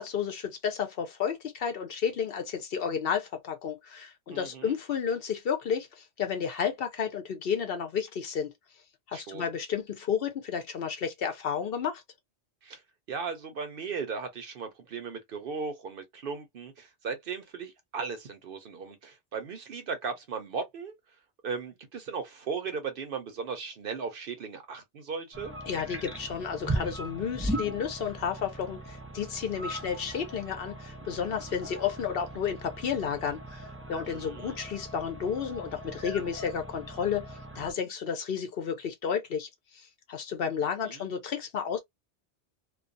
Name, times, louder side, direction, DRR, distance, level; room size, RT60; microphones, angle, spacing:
voice 1, 0.0-8.5 9.1-12.0 25.7-41.8, left 7 dB, 60° left, 0.8 m, -32 dB
voice 2, 4.3-4.8 9.1-9.5 12.6-12.8 13.1-20.9 21.4-25.5 34.1-34.6 40.8-41.1, right 5 dB, 60° right, 0.7 m, -37 dB
sound 1, 25.3-37.7, right 1 dB, 15° right, 0.5 m, -39 dB
2.3 x 2.3 x 2.5 m
omnidirectional pair, 1.2 m